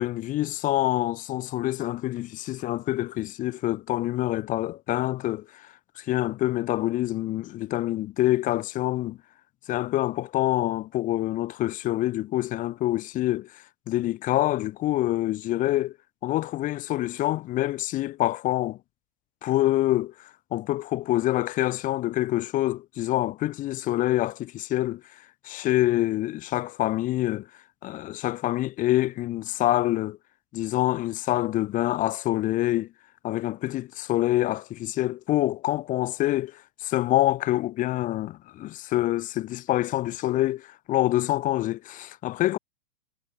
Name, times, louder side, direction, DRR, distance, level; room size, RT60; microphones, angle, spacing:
voice 1, 0.0-5.7 6.0-9.2 9.7-15.9 16.2-18.8 19.4-25.0 25.4-27.5 27.8-30.2 30.5-32.9 33.2-42.6, left 15 dB, 20° left, 0.9 m, -26 dB
figure-of-eight pair, 110°, 39 cm